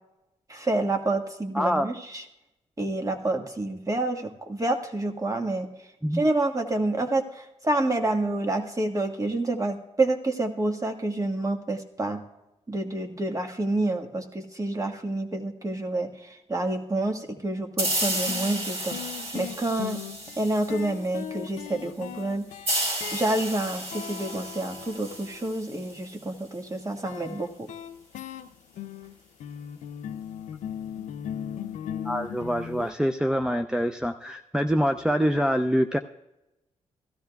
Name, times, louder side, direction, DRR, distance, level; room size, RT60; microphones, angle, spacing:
voice 1, 0.5-2.2 2.8-5.7 6.1-12.2 12.7-19.0 19.3-20.0 20.4-22.5 23.1-27.7, right 2 dB, 25° right, 4 dB, 1.6 m, -28 dB
voice 2, 1.5-1.9 6.0-6.2 27.2-27.3 32.0-36.0, equal, 5° right, 6 dB, 0.5 m, -25 dB
sound 1, 17.8-17.9 18.3-25.5 27.1-32.9, left 9 dB, 85° left, 0.5 m, -38 dB
sound 2, 17.8-21.2 22.7-26.2, right 1 dB, 55° right, 4.8 m, -32 dB
16.5 x 13.0 x 2.3 m, 0.95 s
cardioid pair, 65°, 12 cm